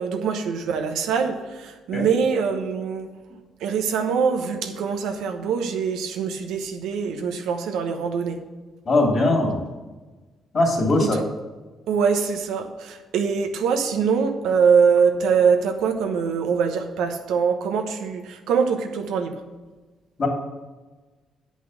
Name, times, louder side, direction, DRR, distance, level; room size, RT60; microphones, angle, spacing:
voice 1, 0.0-3.1 3.6-8.4 11.0-11.2 11.9-19.4, right 6 dB, 90° right, 5 dB, 1.0 m, -23 dB
voice 2, 8.9-9.6 10.5-11.2 20.2-20.3, left 2 dB, 45° left, 0 dB, 2.8 m, -20 dB
8.5 x 5.4 x 6.3 m, 1.3 s
cardioid pair, 90°, 0 cm